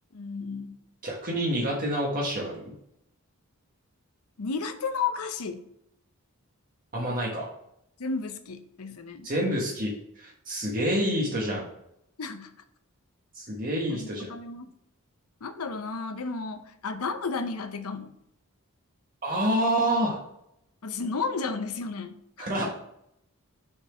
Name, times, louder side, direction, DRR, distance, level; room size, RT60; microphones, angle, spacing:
voice 1, 0.1-0.8 4.4-5.7 8.0-9.3 12.2-12.5 13.9-14.7 15.4-18.1 20.8-22.5, left 4 dB, 80° left, 9 dB, 0.7 m, -33 dB
voice 2, 1.0-2.7 6.9-7.5 9.2-11.7 13.3-14.3 19.2-20.2 22.4-22.6, right 1 dB, 40° right, -3 dB, 1.3 m, -28 dB
6.1 x 4.2 x 5.0 m, 0.77 s
head